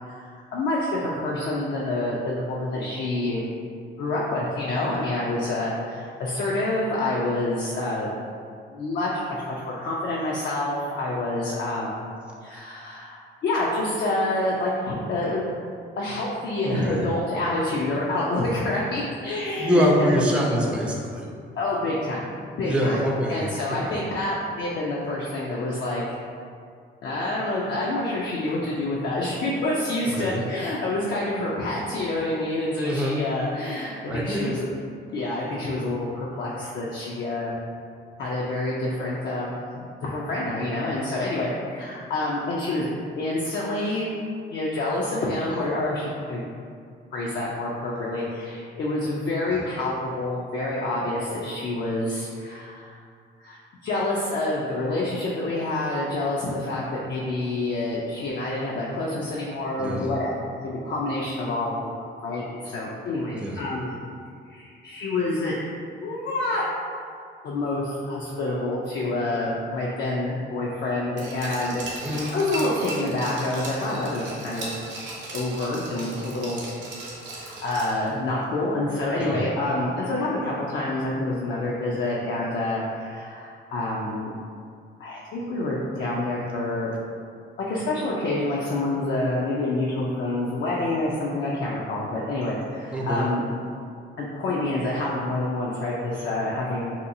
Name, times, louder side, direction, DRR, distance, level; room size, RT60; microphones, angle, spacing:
voice 1, 0.1-3.4 4.0-8.1 8.7-12.0 12.4-15.5 16.0-20.1 21.6-22.3 22.6-23.0 23.3-26.1 27.0-34.7 35.1-37.5 38.2-42.9 43.2-44.1 44.5-46.4 47.1-53.0 53.4-60.3 60.6-64.0 64.5-65.6 66.0-66.6 67.4-74.8 75.3-76.6 77.4-84.3 85.0-86.9 87.6-93.4 94.2-96.9, left 2 dB, 60° left, -5 dB, 0.4 m, -27 dB
voice 2, 16.6-17.1 19.6-21.3 22.6-24.0 30.2-30.4 32.8-33.2 34.1-34.5 59.8-60.1 63.3-63.6 72.0-72.3 79.2-79.4 92.9-93.3, equal, 5° right, -3 dB, 0.4 m, -24 dB
Glass, 71.2-78.1 78.4-78.5, right 2 dB, 70° right, 0.7 m, -37 dB
2.8 x 2.3 x 2.6 m, 2.3 s
cardioid pair, 90°, 20 cm